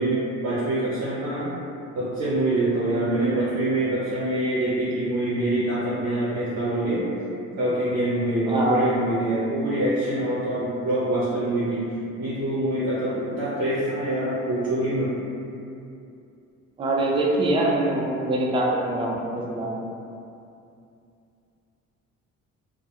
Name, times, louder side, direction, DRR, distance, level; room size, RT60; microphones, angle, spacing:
voice 1, 0.0-1.5 1.9-7.1 7.6-11.8 12.2-15.1, right 1 dB, 60° right, -9 dB, 0.6 m, -25 dB
voice 2, 8.5-8.9 16.8-19.7, right 2 dB, 20° right, -3 dB, 0.3 m, -24 dB
2.2 x 2.1 x 2.7 m, 2.6 s
cardioid pair, 90°, 30 cm